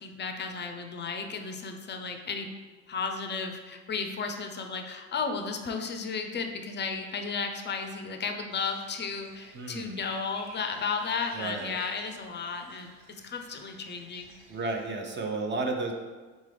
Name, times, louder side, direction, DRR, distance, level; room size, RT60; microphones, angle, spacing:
voice 1, 0.0-2.5 2.9-12.9 13.2-14.3, left 5 dB, 30° left, 5 dB, 0.5 m, -34 dB
sound 1, 8.5-14.9, right 2 dB, 55° right, 1.2 m, -54 dB
voice 2, 9.5-10.0 11.3-11.8 14.5-15.9, right 3 dB, 30° right, 3 dB, 0.7 m, -32 dB
3.8 x 3.6 x 3.3 m, 1.3 s
supercardioid pair, 90°, 37 cm